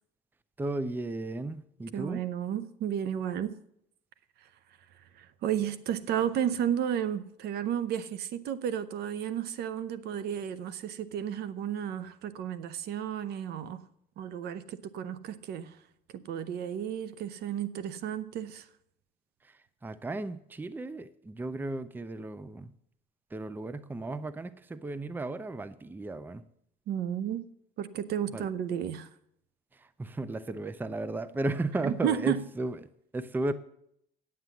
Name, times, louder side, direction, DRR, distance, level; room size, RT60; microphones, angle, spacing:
voice 1, 0.6-2.2 19.4-22.7 23.3-26.4 28.3-28.5 29.7-32.8 33.1-33.5, right 2 dB, 10° right, 0.5 m, -35 dB
voice 2, 1.9-3.6 4.4-4.5 5.1-13.8 14.2-15.8 16.1-18.7 26.9-27.5 27.8-29.1 31.8-32.5, right 9 dB, 70° right, 0.7 m, -33 dB
9.3 x 7.6 x 7.0 m
cardioid pair, 110°, 17 cm